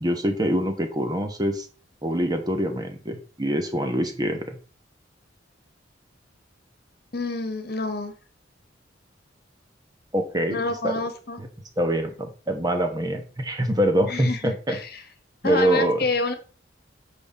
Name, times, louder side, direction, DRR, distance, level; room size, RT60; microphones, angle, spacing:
voice 1, 0.0-1.7 2.0-4.6 10.1-10.9 11.4-11.5 11.8-14.8 15.4-16.1, right 1 dB, 20° right, 5 dB, 1.0 m, -25 dB
voice 2, 7.1-8.1 10.5-11.4 14.1-15.0 15.4-16.3, left 3 dB, 55° left, 8 dB, 1.3 m, -28 dB
7.9 x 5.3 x 4.1 m, 0.37 s
head